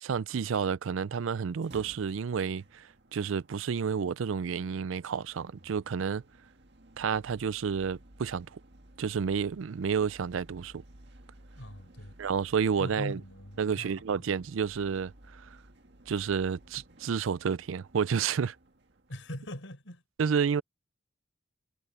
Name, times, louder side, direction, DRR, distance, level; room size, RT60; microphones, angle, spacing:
voice 1, 0.0-6.2 7.0-8.6 9.0-10.8 12.2-13.2 13.6-15.5 16.1-18.6 20.2-20.6, right 6 dB, 85° right, 0.4 m, -30 dB
sound 1, 1.5-19.6, right 1 dB, 55° right, 1.9 m, -56 dB
voice 2, 11.6-12.2 12.8-13.9 14.2-14.3 19.1-20.0, equal, 75° left, 5.1 m, -41 dB
head